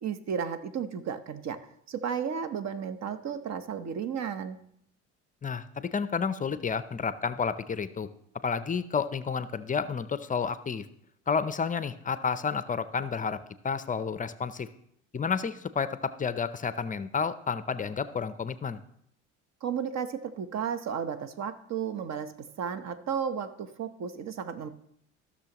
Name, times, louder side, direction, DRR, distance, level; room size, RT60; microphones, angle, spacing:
voice 1, 0.0-1.6 1.9-4.6 19.6-22.3 22.6-24.7, right 7 dB, 50° right, 11 dB, 0.9 m, -33 dB
voice 2, 5.4-8.1 8.4-10.9 11.3-13.4 13.6-14.7 15.1-18.8, left 6 dB, 25° left, 13 dB, 0.5 m, -30 dB
15.0 x 6.4 x 2.9 m, 0.71 s
supercardioid pair, 80°, 35 cm